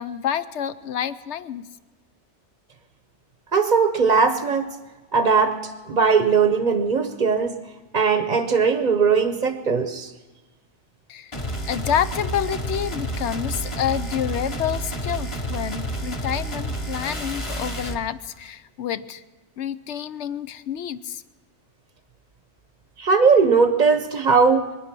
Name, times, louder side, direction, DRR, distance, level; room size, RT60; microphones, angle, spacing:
voice 1, 0.0-1.7 11.1-11.3 11.7-19.2 19.6-21.2, left 9 dB, 75° left, 14 dB, 1.0 m, -28 dB
voice 2, 3.5-4.7 5.1-5.6 5.9-7.6 7.9-10.1 23.0-24.7, right 5 dB, 45° right, 8 dB, 0.9 m, -19 dB
sound 1, 11.3-18.0, right 1 dB, 25° left, 1.2 m, -30 dB
24.0 x 9.9 x 6.0 m, 1.2 s
omnidirectional pair, 1.2 m